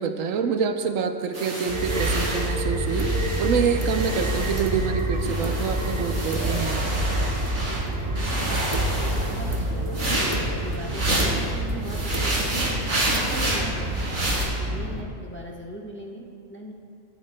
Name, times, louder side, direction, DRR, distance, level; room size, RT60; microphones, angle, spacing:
voice 1, 0.0-3.1 3.4-6.9, right 6 dB, 80° right, 7 dB, 1.0 m, -26 dB
sound 1, 1.3-4.9 5.2-7.8 8.2-11.5 11.8-14.4, right 1 dB, 65° right, 3.0 m, -29 dB
sound 2, 1.7-15.0, right 1 dB, 30° right, 0.7 m, -27 dB
voice 2, 7.5-12.6 13.0-16.2 16.5-16.7, right 1 dB, 10° left, -2 dB, 0.8 m, -39 dB
20.5 x 9.2 x 2.2 m, 2.4 s
omnidirectional pair, 1.4 m